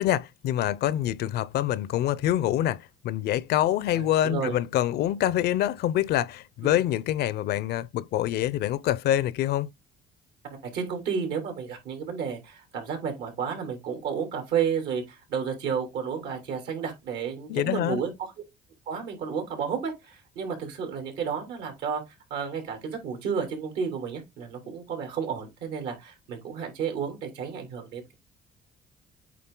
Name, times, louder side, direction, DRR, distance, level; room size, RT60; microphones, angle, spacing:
voice 1, 0.0-9.7 17.5-18.0, left 12 dB, 75° left, 0.6 m, -26 dB
voice 2, 3.9-4.6 6.6-6.8 10.5-18.3 18.9-22.0 22.3-28.1, right 6 dB, 85° right, 3.2 m, -32 dB
8.5 x 3.7 x 3.8 m
cardioid pair, 110°, 17 cm